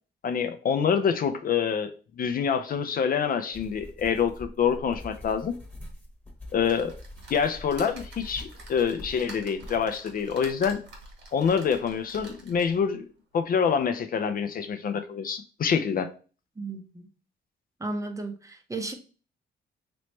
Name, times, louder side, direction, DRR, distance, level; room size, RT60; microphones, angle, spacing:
voice 1, 0.2-1.9 2.2-5.5 6.5-6.9 7.3-10.8 11.3-13.0 13.3-16.1, left 7 dB, 45° left, 0.4 m, -26 dB
sound 1, 3.5-9.9, left 1 dB, 10° left, 1.1 m, -44 dB
sound 2, 6.7-12.9 13.4-13.5 13.8-13.9, right 2 dB, 70° right, 1.6 m, -47 dB
voice 2, 16.6-17.1 17.8-18.9, right 2 dB, 15° right, 0.7 m, -34 dB
3.1 x 3.0 x 3.1 m
cardioid pair, 90°, 20 cm